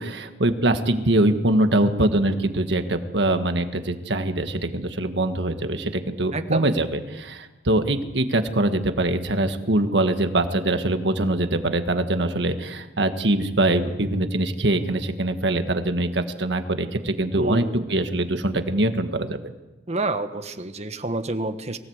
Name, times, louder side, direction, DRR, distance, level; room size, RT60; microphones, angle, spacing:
voice 1, 0.0-19.4, right 1 dB, 75° right, 7 dB, 1.6 m, -23 dB
voice 2, 6.3-6.7 17.3-17.8 19.9-21.8, right 2 dB, 40° right, 9 dB, 1.3 m, -28 dB
23.5 x 16.5 x 8.0 m, 1.1 s
head